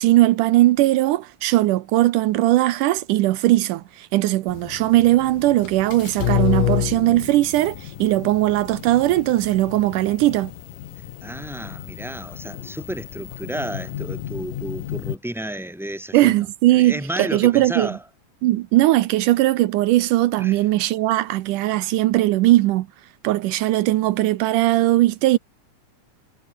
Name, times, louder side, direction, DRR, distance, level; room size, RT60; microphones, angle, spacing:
voice 1, 0.0-10.5 16.1-18.0 18.4-22.9 23.2-25.4, right 16 dB, 85° right, 2.3 m, -19 dB
sound 1, 4.5-15.2, left 12 dB, 90° left, 3.1 m, -30 dB
voice 2, 11.2-16.4 16.7-18.0 20.4-20.6, right 1 dB, ahead, 4.7 m, -32 dB
omnidirectional pair, 3.7 m